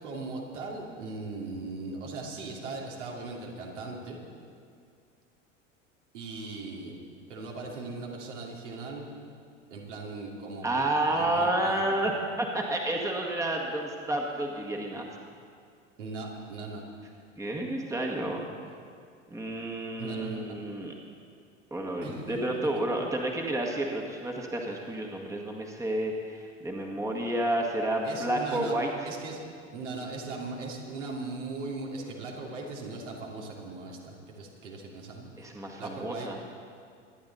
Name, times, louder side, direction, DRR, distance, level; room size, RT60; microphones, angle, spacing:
voice 1, 0.0-4.2 6.1-7.0 7.3-9.2 9.7-10.7 11.2-11.8 16.0-16.8 20.0-20.6 22.0-22.8 28.0-28.7 29.0-29.4 29.7-35.5 35.8-36.3, right 3 dB, 65° right, -2 dB, 2.9 m, -39 dB
voice 2, 10.6-12.1 12.4-15.1 17.4-18.4 19.3-20.9 21.7-28.9 35.4-36.4, right 1 dB, 10° right, 0 dB, 1.8 m, -30 dB
24.5 x 10.5 x 4.1 m, 2.3 s
figure-of-eight pair, 80°, 38 cm